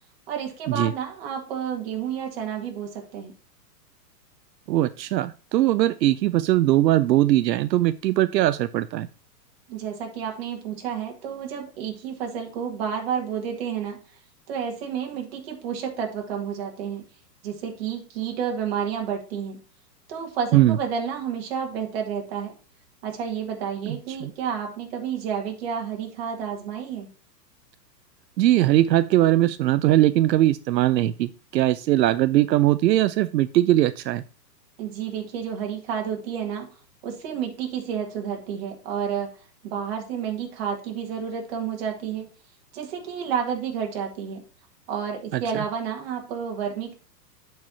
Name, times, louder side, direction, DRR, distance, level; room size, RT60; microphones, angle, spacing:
voice 1, 0.3-3.3 9.7-14.0 14.5-17.0 17.4-19.6 20.1-22.5 23.0-27.1 34.8-36.7 37.0-39.3 39.6-42.3 42.7-44.4 44.9-46.9, right 7 dB, 35° right, 2 dB, 1.9 m, -30 dB
voice 2, 4.7-9.1 20.5-20.8 23.9-24.3 28.4-34.2 45.3-45.6, right 14 dB, 80° right, 13 dB, 0.6 m, -20 dB
12.0 x 4.7 x 2.7 m, 0.35 s
hypercardioid pair, 165°, 50 cm